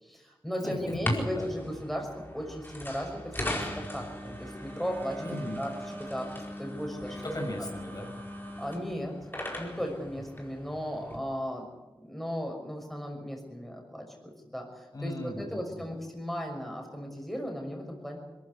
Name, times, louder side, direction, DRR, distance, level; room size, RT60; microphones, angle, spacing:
voice 1, 0.0-5.2 5.6-5.7 6.0-6.3 6.6-7.2 8.6-9.2 9.6-11.7 12.0-18.2, equal, ahead, 2 dB, 6.1 m, -36 dB
voice 2, 0.6-1.5 5.2-5.6 7.2-8.1 14.9-16.0, left 1 dB, 45° left, 1 dB, 5.7 m, -37 dB
sound 1, 0.8-11.2, equal, 25° left, 4.8 m, -38 dB
22.0 x 15.0 x 9.6 m, 1.1 s
cardioid pair, 50°, 9 cm